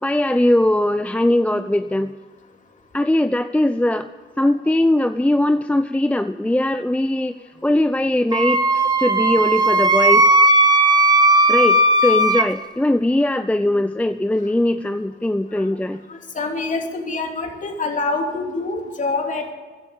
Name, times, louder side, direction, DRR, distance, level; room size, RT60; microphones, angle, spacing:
voice 1, 0.0-2.1 2.9-4.1 4.4-7.3 7.6-10.2 11.5-16.0, left 1 dB, 5° left, 10 dB, 0.6 m, -20 dB
Wind instrument woodwind instrument, 8.3-12.5, right 2 dB, 20° right, 1.3 m, -16 dB
voice 2, 16.1-19.5, left 3 dB, 40° left, 3 dB, 3.2 m, -26 dB
14.5 x 11.5 x 8.3 m, 1.4 s
cardioid pair, 90°, 20 cm